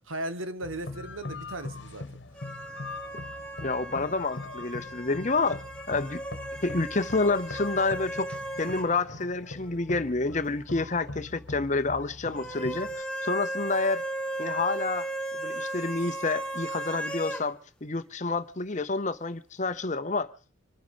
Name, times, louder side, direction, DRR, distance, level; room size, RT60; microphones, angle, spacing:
voice 1, 0.1-2.0, right 1 dB, 75° right, 1.6 m, -36 dB
sound 1, 0.6-13.0, left 2 dB, 60° left, 1.4 m, -42 dB
sound 2, 2.3-8.9 9.2-9.3 12.3-17.5, right 1 dB, 5° left, 1.3 m, -36 dB
voice 2, 3.6-6.2 6.6-8.3 8.6-14.0 14.4-15.1 15.3-20.3, left 3 dB, 35° left, 0.8 m, -29 dB
26.0 x 9.4 x 5.1 m
head